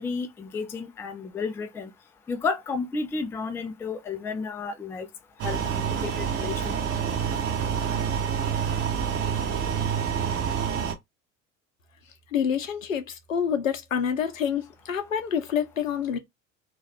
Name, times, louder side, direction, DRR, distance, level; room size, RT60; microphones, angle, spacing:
voice 1, 0.0-1.9 2.3-5.1 5.4-6.7, left 4 dB, 5° left, 0.3 m, -32 dB
sound 1, 5.4-10.9, right 7 dB, 35° right, 0.8 m, -27 dB
voice 2, 12.3-16.2, left 8 dB, 90° left, 0.6 m, -27 dB
2.4 x 2.2 x 3.3 m
hypercardioid pair, 65°, 39 cm